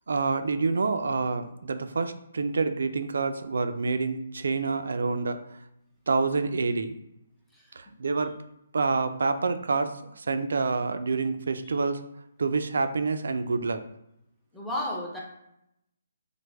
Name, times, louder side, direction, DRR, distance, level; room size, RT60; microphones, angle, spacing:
voice 1, 0.1-5.4 6.1-7.0 7.8-8.3 8.7-12.0 12.4-13.8, right 4 dB, 70° right, 9 dB, 0.3 m, -27 dB
voice 2, 7.5-8.0 11.6-11.7 14.5-15.2, left 1 dB, ahead, -5 dB, 0.4 m, -34 dB
3.2 x 2.1 x 3.3 m, 0.81 s
hypercardioid pair, 175°, 0 cm